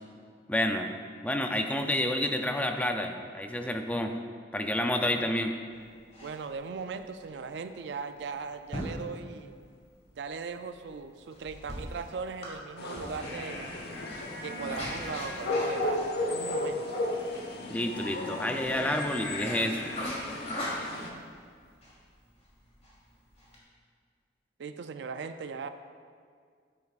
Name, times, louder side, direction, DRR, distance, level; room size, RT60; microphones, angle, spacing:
voice 1, 0.5-0.9 1.2-4.1 4.5-5.5 17.7-19.9, left 1 dB, 10° left, 5 dB, 0.4 m, -29 dB
voice 2, 5.0-5.3 6.2-9.5 10.1-13.7 14.4-16.8 24.6-25.7, right 5 dB, 70° right, 9 dB, 0.4 m, -38 dB
sound 1, 5.7-23.6, equal, 40° left, 2.2 m, -43 dB
sound 2, 12.8-21.1, left 2 dB, 60° left, 0.9 m, -34 dB
10.5 x 9.1 x 2.4 m, 2.1 s
head